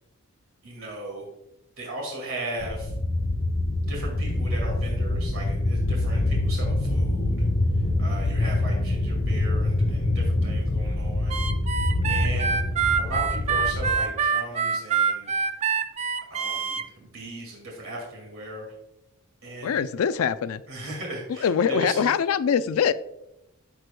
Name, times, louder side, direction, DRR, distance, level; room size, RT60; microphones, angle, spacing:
voice 1, 0.6-1.3 1.8-2.9 3.9-7.4 8.0-11.4 11.7-12.6 13.0-15.3 16.3-18.7 19.4-19.8 20.7-22.1, right 1 dB, 65° right, 2.2 m, -37 dB
sound 1, 2.6-14.0, left 2 dB, 40° left, 0.8 m, -25 dB
Harmonica, 11.3-16.8, right 6 dB, 30° right, 0.4 m, -25 dB
voice 2, 19.6-20.6 21.3-22.9, left 7 dB, 75° left, 0.4 m, -23 dB
14.0 x 4.7 x 2.2 m
head